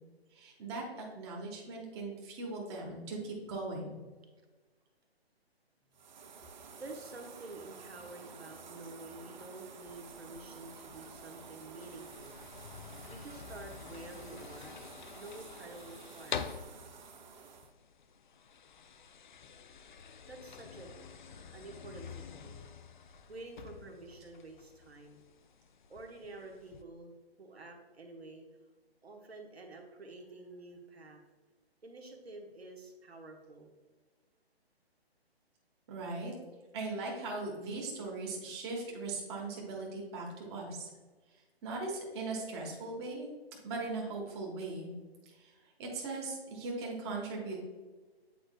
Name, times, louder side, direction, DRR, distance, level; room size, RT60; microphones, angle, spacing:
voice 1, 0.3-4.0 35.9-36.3 36.7-40.9 41.6-43.3 43.6-44.9 45.4-45.5 45.8-47.6, right 3 dB, 25° right, -1 dB, 1.2 m, -39 dB
sound 1, 5.9-17.7, right 5 dB, 45° right, 0.6 m, -51 dB
voice 2, 6.8-12.4 13.1-14.9 15.1-16.5 20.3-20.9 21.5-22.7 23.3-25.2 25.9-27.1 27.4-28.4 29.0-31.2 31.8-33.7, right 2 dB, 75° right, 2 dB, 1.3 m, -49 dB
sound 2, 9.8-26.8, left 7 dB, 50° left, 0.4 m, -48 dB
8.7 x 4.8 x 2.2 m, 1.3 s
figure-of-eight pair, 145°, 31 cm